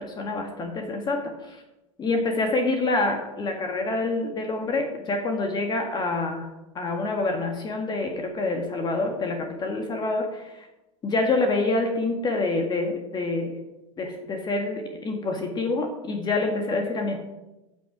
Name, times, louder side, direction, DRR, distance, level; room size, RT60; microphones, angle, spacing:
voice 1, 0.0-1.6 2.0-6.5 6.8-10.7 11.0-13.6 14.0-17.2, left 2 dB, 25° left, 3 dB, 1.8 m, -27 dB
14.0 x 6.4 x 4.8 m, 0.97 s
figure-of-eight pair, 85°, 17 cm